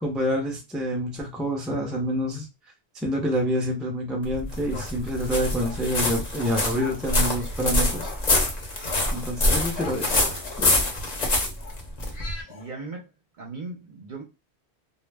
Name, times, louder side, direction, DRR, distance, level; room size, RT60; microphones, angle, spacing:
voice 1, 0.0-2.5 3.0-8.1 9.1-10.3 10.6-10.7, equal, ahead, 0.5 m, -27 dB
sound 1, 4.2-12.4, left 2 dB, 45° left, 0.7 m, -25 dB
sound 2, 4.7-11.2 11.6-11.8 12.1-12.2 12.5-12.7, left 6 dB, 85° left, 1.0 m, -42 dB
voice 2, 12.4-13.1 13.4-14.2, right 3 dB, 55° right, 0.7 m, -38 dB
2.2 x 2.0 x 3.3 m
omnidirectional pair, 1.1 m